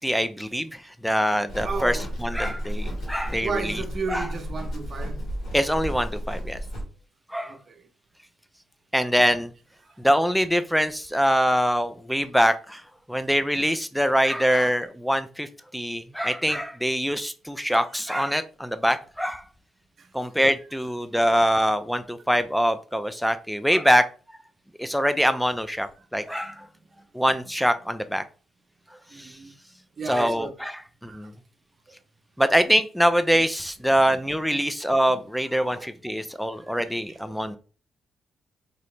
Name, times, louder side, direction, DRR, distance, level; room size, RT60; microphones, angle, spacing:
voice 1, 0.0-3.7 4.1-4.3 5.5-6.6 7.3-7.5 8.9-9.5 10.0-12.8 13.1-15.5 15.7-19.4 20.1-24.1 24.8-26.5 27.1-28.2 29.2-29.3 30.1-30.7 31.0-31.3 32.4-37.6, equal, ahead, 0.5 m, -24 dB
Livestock farm animals working animals, 1.5-6.8, equal, 75° left, 1.8 m, -32 dB
voice 2, 1.6-2.1 3.4-5.3 7.4-7.9 9.9-10.0 20.0-20.1 26.0-26.1 26.4-26.7 27.0-27.1 29.1-29.5 30.0-30.5 31.1-31.3 34.5-34.7 35.1-35.2 35.5-36.3 36.6-37.4, right 4 dB, 45° right, 0.8 m, -35 dB
3.9 x 2.8 x 3.2 m
cardioid pair, 85°, 0 cm